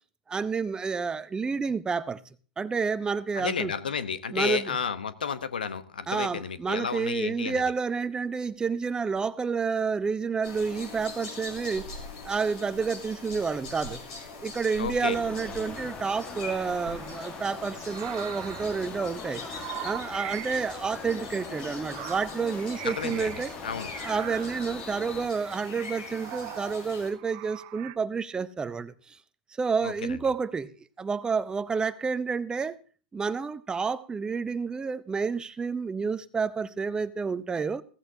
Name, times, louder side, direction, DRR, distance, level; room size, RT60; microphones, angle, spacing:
voice 1, 0.3-2.2 2.6-3.7 4.3-4.7 6.1-11.9 12.2-14.0 14.4-19.4 19.8-23.5 24.0-29.2 29.6-30.7 31.0-32.8 33.1-37.8, right 5 dB, 15° right, 0.8 m, -29 dB
voice 2, 3.3-7.6 14.8-15.2 22.8-23.9 29.8-30.2, left 6 dB, 85° left, 1.0 m, -32 dB
sound 1, 10.4-27.1, left 3 dB, 65° left, 6.2 m, -42 dB
sound 2, 15.0-25.3, left 4 dB, 25° left, 1.6 m, -42 dB
sound 3, 16.7-17.2 17.9-20.7 21.6-23.6 23.9-24.8 25.3-28.0, right 20 dB, 50° right, 0.5 m, -41 dB
16.0 x 14.5 x 2.8 m
hypercardioid pair, 100°, 5 cm